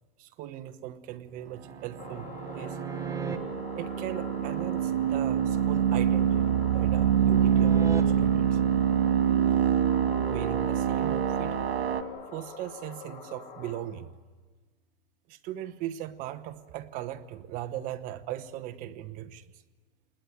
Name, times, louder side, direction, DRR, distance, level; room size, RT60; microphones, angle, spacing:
voice 1, 0.2-2.9 3.8-8.6 10.3-11.6 12.3-14.1 15.3-19.5, right 12 dB, 25° right, 11 dB, 0.9 m, -38 dB
sound 1, 1.6-3.4 6.1-8.0 11.5-11.7, right 6 dB, 10° right, 1.3 m, -39 dB
sound 2, 2.0-13.8, left 5 dB, 30° left, 3.9 m, -45 dB
sound 3, 2.0-12.0, right 9 dB, 90° right, 2.1 m, -25 dB
27.5 x 20.5 x 9.3 m, 1.3 s
supercardioid pair, 160°, 30 cm